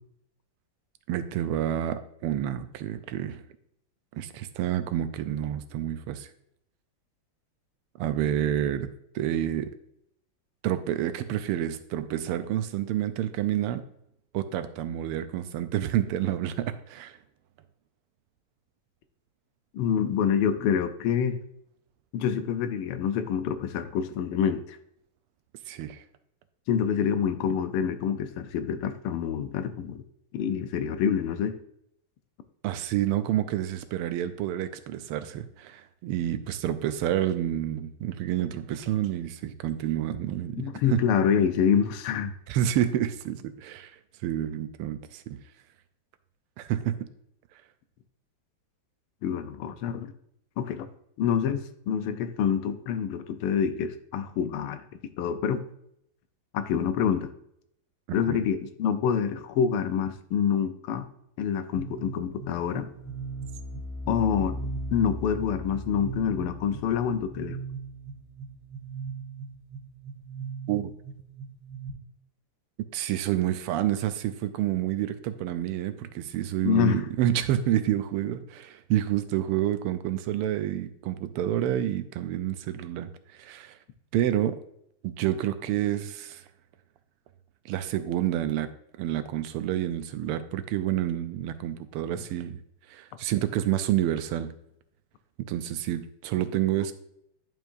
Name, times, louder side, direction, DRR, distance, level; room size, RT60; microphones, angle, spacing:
voice 1, 1.1-3.4 4.1-6.3 8.0-8.9 9.1-9.7 10.6-13.8 14.3-17.2 25.7-26.0 32.6-41.0 42.5-43.9 44.2-45.4 46.6-47.1 58.1-58.4 70.7-70.9 72.9-83.1 83.4-83.8 84.1-84.6 85.0-86.4 87.6-88.7 89.0-92.6 92.9-94.5 95.4-96.9, right 12 dB, 85° right, 11 dB, 1.5 m, -29 dB
voice 2, 19.7-21.4 22.1-24.8 26.7-30.0 30.3-31.6 40.6-42.3 49.2-50.1 50.6-50.9 51.2-54.8 55.2-55.6 56.5-57.3 58.1-61.1 61.4-62.9 64.1-64.6 64.9-67.6 76.6-77.0, left 8 dB, 85° left, 10 dB, 1.5 m, -26 dB
sound 1, 61.8-71.9, right 3 dB, 60° left, 1.7 m, -38 dB
10.5 x 4.6 x 2.6 m, 0.74 s
omnidirectional pair, 2.4 m